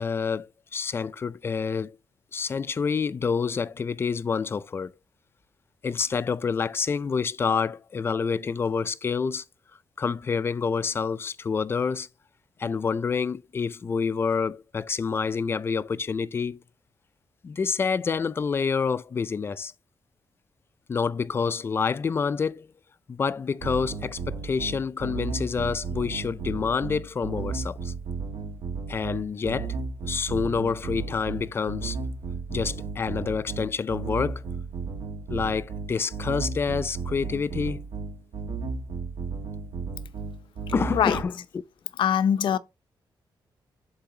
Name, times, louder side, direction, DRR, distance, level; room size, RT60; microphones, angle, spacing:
voice 1, 0.0-2.0 2.3-4.9 5.8-9.4 10.0-12.1 12.6-16.6 17.4-19.7 20.9-22.7 23.1-27.9 28.9-29.8 30.0-32.0 32.5-34.4 35.3-37.8 40.7-41.6, left 5 dB, 30° left, 0.4 m, -28 dB
sound 1, 23.6-41.2, right 4 dB, 80° right, 1.6 m, -34 dB
voice 2, 42.0-42.6, left 9 dB, 70° left, 0.6 m, -22 dB
11.5 x 4.0 x 2.8 m
wide cardioid pair, 175°, 9 cm